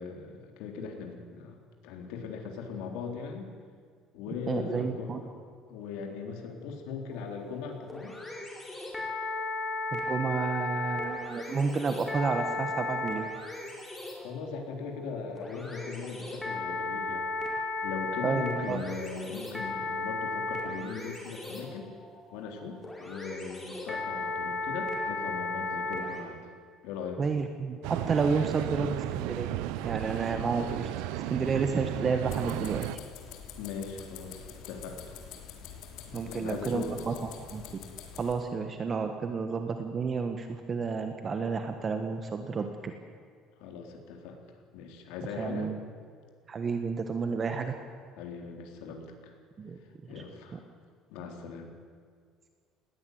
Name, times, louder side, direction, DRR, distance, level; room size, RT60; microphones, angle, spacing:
voice 1, 0.0-3.5 4.1-5.4 5.7-8.2 14.2-17.3 17.8-21.9 22.3-26.4 26.8-27.2 33.6-35.0 36.1-37.1 43.6-44.4 44.7-45.7 48.2-49.3 50.1-50.7 51.1-51.7, left 5 dB, 85° left, 3 dB, 3.9 m, -39 dB
voice 2, 4.5-5.2 9.9-13.3 18.2-18.8 27.2-29.5 29.8-30.9 31.3-32.8 36.1-37.1 37.5-37.6 38.2-42.9 45.4-45.8 46.5-47.7 49.6-49.8 50.5-50.6, right 5 dB, 25° right, 6 dB, 1.4 m, -31 dB
sound 1, 7.1-26.2, left 2 dB, 10° left, 4.4 m, -35 dB
sound 2, 27.8-33.0, right 13 dB, 90° right, 0.9 m, -34 dB
sound 3, 32.3-38.3, left 8 dB, 70° left, 3.3 m, -46 dB
20.0 x 17.0 x 9.4 m, 2.1 s
cardioid pair, 160°, 0 cm